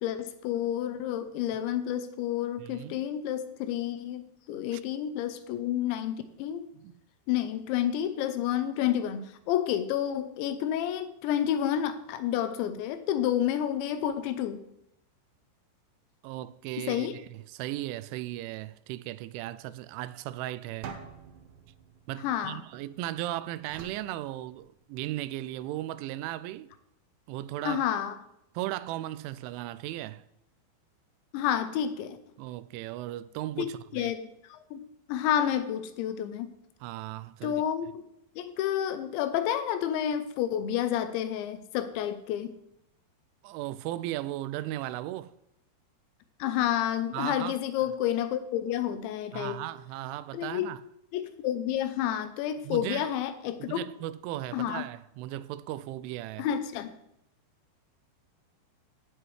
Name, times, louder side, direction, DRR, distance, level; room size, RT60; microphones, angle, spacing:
voice 1, 0.0-6.7 7.3-14.6 16.8-17.1 22.2-22.6 27.7-28.2 31.3-32.2 33.6-36.5 37.4-38.1 38.4-42.5 46.4-49.6 50.3-50.7 51.1-53.8 54.5-54.9 56.4-56.9, left 10 dB, 80° left, 2.9 m, -30 dB
voice 2, 2.6-3.1 4.7-4.8 6.7-6.9 16.2-20.9 22.1-26.7 27.3-27.9 28.6-30.2 32.4-34.1 36.8-37.6 43.4-45.3 47.1-47.6 49.3-50.8 52.6-53.1 53.6-56.5, right 15 dB, 90° right, 3.0 m, -36 dB
sound 1, 20.8-23.0 23.7-25.1, right 6 dB, 75° right, 2.1 m, -47 dB
16.5 x 7.8 x 3.3 m
omnidirectional pair, 5.3 m